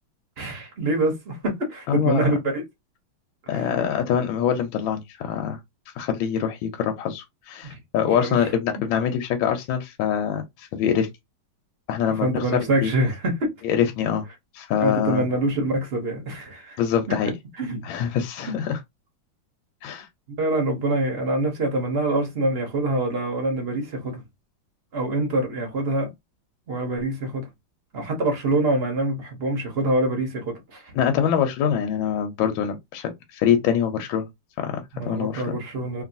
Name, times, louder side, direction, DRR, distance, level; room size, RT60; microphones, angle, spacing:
voice 1, 0.4-2.6 3.5-3.6 7.6-7.8 8.1-8.5 12.0-13.5 14.8-16.8 17.6-17.9 18.5-18.6 20.4-24.2 24.9-26.1 26.7-27.5 27.9-30.9 34.9-36.0, right 2 dB, 45° right, 0.8 m, -25 dB
voice 2, 1.9-2.2 3.5-5.6 6.0-11.1 11.9-12.9 13.6-14.2 14.5-15.2 16.8-17.3 17.8-18.8 19.8-20.1 30.9-34.3 34.6-35.6, left 8 dB, 80° left, 1.3 m, -24 dB
3.0 x 2.6 x 2.5 m
omnidirectional pair, 2.2 m